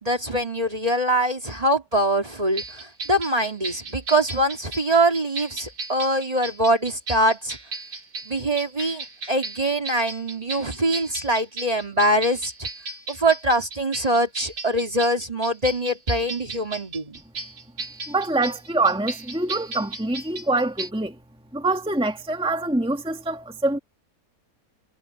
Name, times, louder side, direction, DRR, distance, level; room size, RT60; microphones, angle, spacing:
voice 1, 0.0-7.6 8.3-12.7 13.1-17.2, right 1 dB, 25° right, 2.3 m, -23 dB
sound 1, 2.6-20.9, right 3 dB, 80° right, 4.4 m, -36 dB
voice 2, 18.1-21.2 21.5-23.8, right 2 dB, 5° right, 1.9 m, -25 dB
omnidirectional pair, 1.6 m